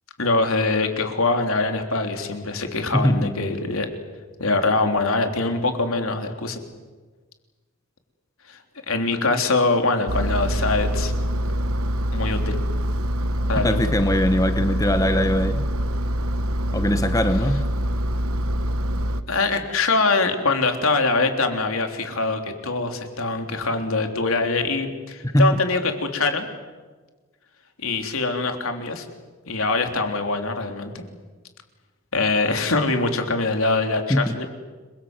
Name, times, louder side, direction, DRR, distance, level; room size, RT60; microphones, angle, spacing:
voice 1, 0.2-3.9 4.4-6.6 8.5-8.6 8.9-11.1 12.1-12.6 13.5-13.8 19.3-26.5 27.8-29.1 29.5-31.0 32.1-34.5, left 3 dB, 75° left, 5 dB, 3.5 m, -23 dB
voice 2, 2.9-3.3 13.6-15.6 16.7-17.6 25.3-25.6 34.1-34.3, equal, 15° left, 8 dB, 1.1 m, -21 dB
Engine, 10.1-19.2, equal, 80° right, 1.2 m, -24 dB
30.0 x 23.0 x 8.0 m, 1.3 s
head